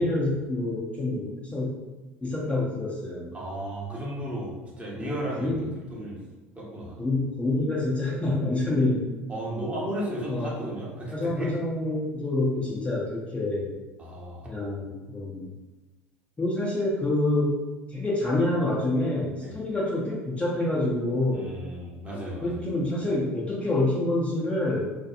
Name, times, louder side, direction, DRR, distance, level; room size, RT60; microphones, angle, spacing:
voice 1, 0.0-1.8 2.2-3.3 5.0-5.7 7.0-9.0 10.2-10.5 11.1-13.7 14.4-15.5 16.4-17.6 17.9-21.5 22.4-25.0, left 2 dB, 15° left, -5 dB, 0.6 m, -27 dB
voice 2, 3.3-6.2 6.6-7.0 9.3-11.6 14.0-14.5 19.4-19.5 21.3-22.6, right 1 dB, 20° right, -5 dB, 0.9 m, -34 dB
2.7 x 2.4 x 2.4 m, 1.2 s
hypercardioid pair, 70°, 7 cm